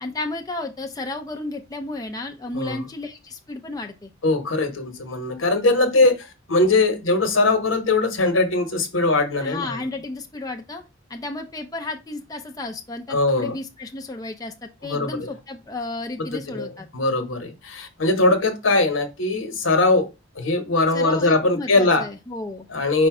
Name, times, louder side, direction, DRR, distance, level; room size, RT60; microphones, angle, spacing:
voice 1, 0.0-4.1 9.4-10.8 11.1-16.9 20.9-22.7, left 2 dB, 20° left, 0.5 m, -33 dB
voice 2, 2.5-2.8 4.2-9.8 13.1-13.5 14.8-15.3 16.2-20.1 20.4-22.1 22.7-23.1, left 2 dB, 80° left, 1.0 m, -21 dB
5.1 x 2.2 x 4.7 m
head